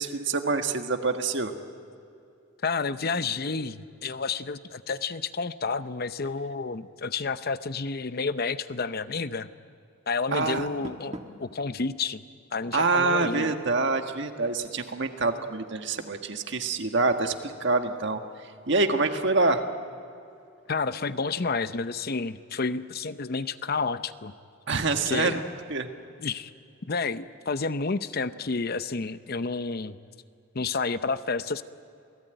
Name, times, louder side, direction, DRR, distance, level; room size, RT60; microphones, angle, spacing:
voice 1, 0.0-1.5 10.3-10.7 12.7-19.6 24.7-25.4 25.7-25.9, right 3 dB, 60° right, 6 dB, 1.7 m, -26 dB
voice 2, 2.6-9.5 10.1-12.2 12.5-13.5 20.7-24.3 25.1-25.4 26.2-26.5 26.9-30.0 30.5-31.6, left 4 dB, 50° left, 12 dB, 0.7 m, -30 dB
Door, 10.3-11.5, right 1 dB, 35° right, 1.6 m, -42 dB
28.0 x 18.0 x 9.1 m, 2.6 s
head